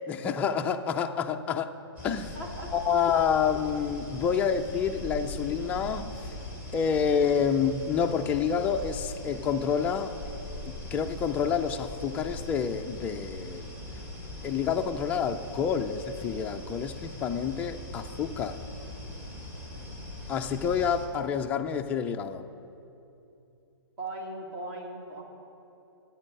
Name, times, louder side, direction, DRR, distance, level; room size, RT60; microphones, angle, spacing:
voice 1, 0.0-1.7 2.0-2.4 2.7-6.1 6.7-10.2 10.6-13.7 14.4-18.6 20.3-22.5, left 7 dB, 10° left, 5 dB, 0.4 m, -28 dB
sound 1, 2.0-21.1, left 1 dB, 15° right, 2.2 m, -41 dB
voice 2, 2.3-2.7 19.5-20.0 24.0-25.2, right 2 dB, 35° right, 0 dB, 2.3 m, -39 dB
14.5 x 9.0 x 5.4 m, 2.8 s
hypercardioid pair, 145°, 14 cm